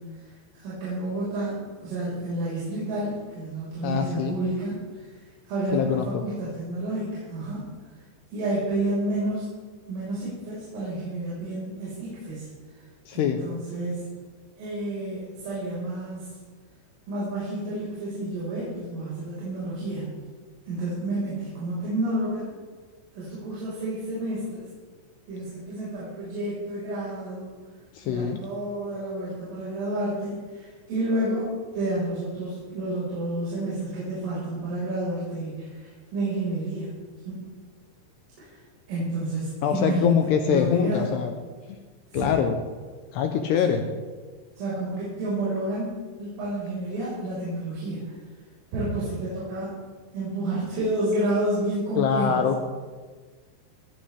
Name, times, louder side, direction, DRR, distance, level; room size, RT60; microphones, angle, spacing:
voice 1, 0.0-7.6 7.9-8.0 8.3-9.5 9.9-12.9 13.1-14.0 14.6-16.3 17.1-20.1 20.7-22.5 23.1-24.7 25.3-27.6 28.0-36.9 37.3-37.4 38.4-38.6 38.9-41.1 42.1-42.3 43.6-43.7 44.6-48.2 48.7-49.7 50.1-52.5, right 1 dB, 80° right, -9 dB, 7.3 m, -30 dB
voice 2, 3.8-4.4 5.7-6.2 13.1-13.4 27.9-28.4 39.6-41.3 41.7-41.8 42.1-42.6 43.1-43.8 52.0-52.6, left 8 dB, 80° left, 5 dB, 2.4 m, -24 dB
19.0 x 16.0 x 3.4 m, 1.4 s
omnidirectional pair, 5.6 m